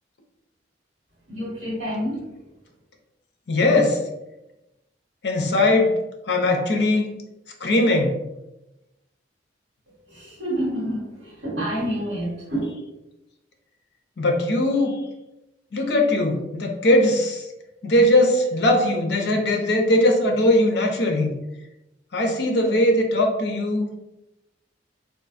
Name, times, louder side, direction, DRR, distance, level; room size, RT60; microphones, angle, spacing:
voice 1, 1.3-2.2 10.1-12.7, equal, 70° right, -8 dB, 1.3 m, -28 dB
voice 2, 3.5-4.0 5.2-6.0 6.3-7.1 7.6-8.2 14.2-15.0 15.7-17.5 17.8-21.4 22.1-23.9, left 1 dB, 60° left, 2 dB, 0.6 m, -20 dB
3.6 x 2.4 x 2.5 m, 0.95 s
head